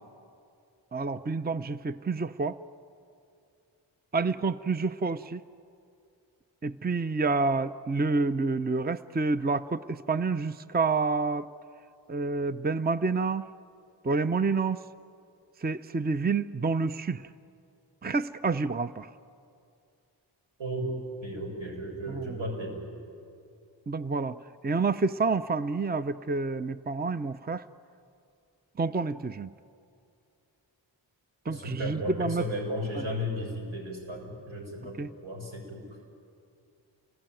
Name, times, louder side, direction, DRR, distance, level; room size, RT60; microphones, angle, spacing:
voice 1, 0.9-2.6 4.1-5.4 6.6-11.5 12.1-13.5 14.0-14.8 15.6-17.3 18.0-19.1 22.1-22.4 23.9-24.4 24.6-27.6 28.8-29.5 31.5-32.4 35.0-35.1, right 4 dB, 20° right, 13 dB, 0.7 m, -28 dB
voice 2, 20.6-20.9 21.2-22.9 31.4-36.0, equal, 85° right, 1 dB, 6.6 m, -35 dB
29.5 x 21.5 x 9.1 m, 2.5 s
cardioid pair, 45°, 46 cm